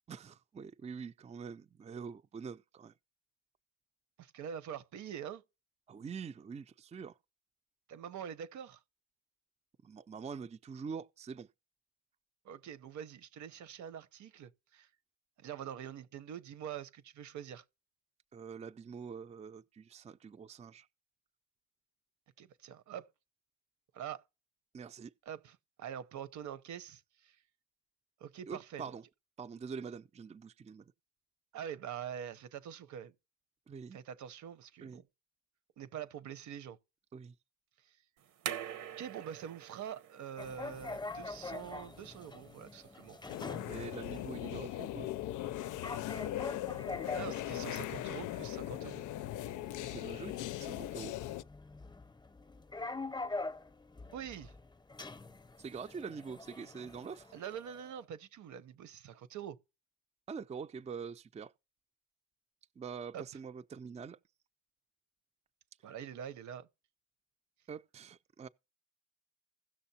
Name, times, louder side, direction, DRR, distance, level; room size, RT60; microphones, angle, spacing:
voice 1, 0.1-2.9 5.9-7.2 9.8-11.5 18.3-20.9 24.7-25.1 28.5-29.0 29.4-30.8 33.7-34.0 34.8-35.0 37.1-37.3 43.6-45.1 49.8-51.1 55.6-57.3 60.3-61.5 62.8-64.2 67.7-68.5, right 6 dB, 20° right, 0.4 m, -45 dB
voice 2, 4.2-5.4 7.9-8.8 12.4-14.9 15.4-17.6 22.4-23.1 23.9-24.2 25.3-27.4 28.2-28.9 31.5-33.1 33.9-35.0 35.8-36.8 37.8-38.0 39.0-43.2 47.2-49.0 54.1-54.5 57.3-59.6 63.1-63.2 65.8-66.7, right 9 dB, 70° right, 0.8 m, -45 dB
sound 1, 38.2-44.8, right 10 dB, 90° right, 1.1 m, -47 dB
sound 2, 40.4-57.9, left 3 dB, 15° left, 0.7 m, -45 dB
sound 3, 43.3-51.4, left 14 dB, 80° left, 0.5 m, -39 dB
16.5 x 6.3 x 2.8 m
cardioid pair, 90°, 30 cm